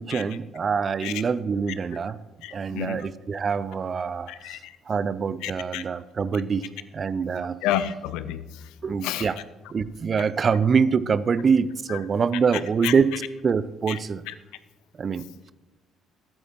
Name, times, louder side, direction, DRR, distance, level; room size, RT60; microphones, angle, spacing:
voice 1, 0.0-2.2 2.5-4.6 4.9-6.6 6.9-7.6 8.8-9.4 9.7-13.1 13.4-14.2 15.0-15.5, right 6 dB, 40° right, 17 dB, 0.6 m, -25 dB
voice 2, 2.4-3.1 4.3-4.7 5.4-5.8 7.6-8.7 9.0-9.3 11.9-12.0 12.8-12.9 13.9-14.0 14.3-14.4, left 11 dB, 65° left, 14 dB, 0.6 m, -30 dB
15.0 x 13.5 x 3.1 m, 1.1 s
figure-of-eight pair, 50°, 0 cm